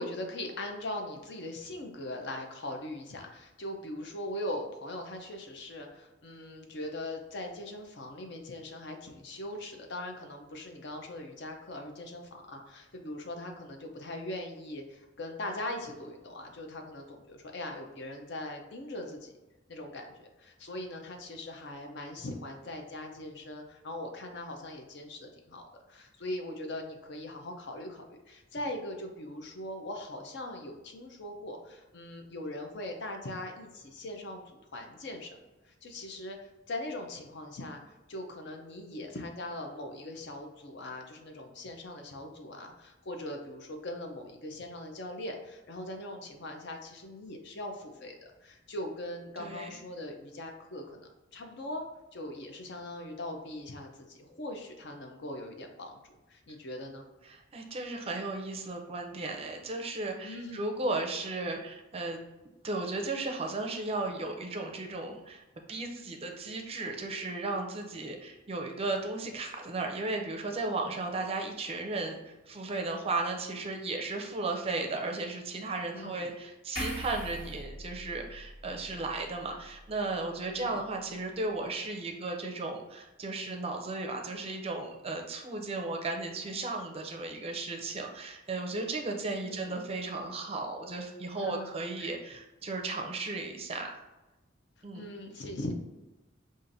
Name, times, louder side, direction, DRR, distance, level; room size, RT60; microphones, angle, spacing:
voice 1, 0.0-19.3 19.7-34.4 34.7-35.4 35.6-36.4 36.7-37.8 38.1-51.8 52.1-56.0 56.3-57.1 60.2-60.7 75.9-76.3 80.6-80.8 89.4-89.8 91.4-92.2 94.9-95.7, left 1 dB, 60° left, 3 dB, 0.6 m, -40 dB
voice 2, 49.4-49.8 57.3-62.2 62.6-65.4 65.7-94.0 94.8-95.0, right 2 dB, 30° right, 3 dB, 0.5 m, -35 dB
sound 1, 76.8-80.1 80.5-80.7, equal, 85° left, 1.5 m, -41 dB
5.5 x 2.5 x 2.6 m, 1.1 s
head